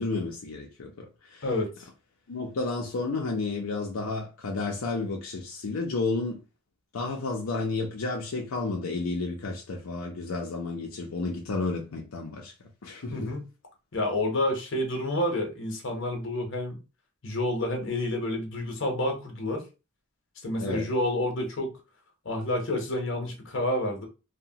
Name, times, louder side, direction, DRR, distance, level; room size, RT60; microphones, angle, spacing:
voice 1, 0.0-1.5 2.3-6.4 6.9-12.5 12.8-13.3 20.6-20.9, left 3 dB, 85° left, 0.5 m, -31 dB
voice 2, 1.4-1.9 13.1-13.5 13.9-16.8 17.2-19.6 20.4-21.7 22.2-24.1, left 1 dB, 60° left, 0.9 m, -29 dB
2.9 x 2.1 x 2.7 m
head